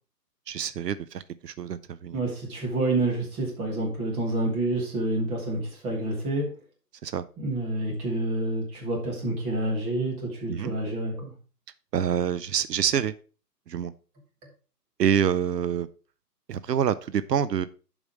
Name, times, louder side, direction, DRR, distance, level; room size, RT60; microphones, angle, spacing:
voice 1, 0.5-2.2 7.0-7.2 10.5-10.7 11.9-13.1 13.7-13.9 15.0-15.9 16.5-17.7, right 8 dB, 75° right, 16 dB, 0.6 m, -26 dB
voice 2, 2.1-6.5 7.4-11.3, right 2 dB, 10° right, 0 dB, 1.4 m, -28 dB
7.2 x 5.0 x 4.7 m, 0.37 s
hypercardioid pair, 150°, 49 cm